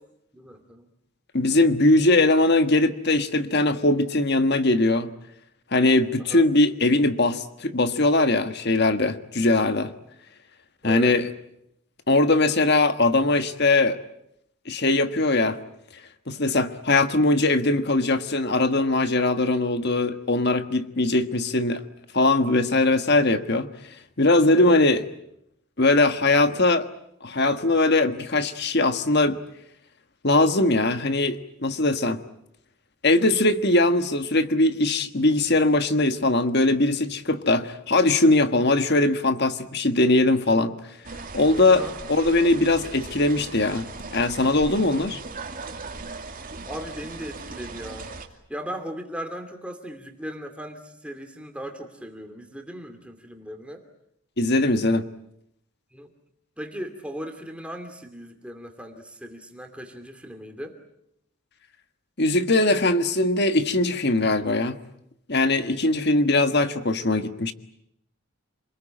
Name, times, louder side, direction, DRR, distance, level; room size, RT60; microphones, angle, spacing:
voice 1, 0.3-0.9 6.2-6.4 10.8-11.2 22.7-22.9 24.5-24.8 41.7-42.0 46.7-48.1 48.5-53.8 55.9-56.1 56.6-60.8 65.6-65.8, equal, 5° right, 5 dB, 2.6 m, -37 dB
voice 2, 1.3-5.1 5.7-9.9 10.8-11.3 12.1-14.0 14.7-15.6 16.3-21.8 22.1-23.7 24.2-25.0 25.8-26.9 27.2-29.4 30.2-32.2 33.0-40.8 41.3-45.2 54.4-55.0 62.2-64.8 65.3-67.5, left 2 dB, 50° left, 9 dB, 1.5 m, -21 dB
sound 1, 41.0-48.3, right 3 dB, 40° right, 2.5 m, -38 dB
28.0 x 21.0 x 8.9 m, 0.78 s
head